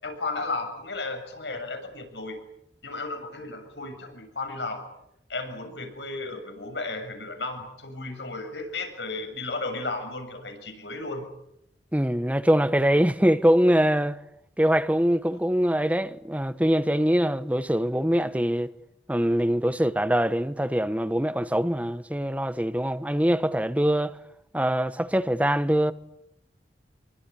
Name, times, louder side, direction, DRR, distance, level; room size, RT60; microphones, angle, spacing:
voice 1, 0.0-2.4 2.8-4.8 5.3-11.3, left 3 dB, 90° left, 7.1 m, -34 dB
voice 2, 11.9-14.2 14.6-18.7 19.1-24.2 24.5-25.9, equal, 10° right, 1.0 m, -23 dB
27.0 x 24.0 x 8.5 m
head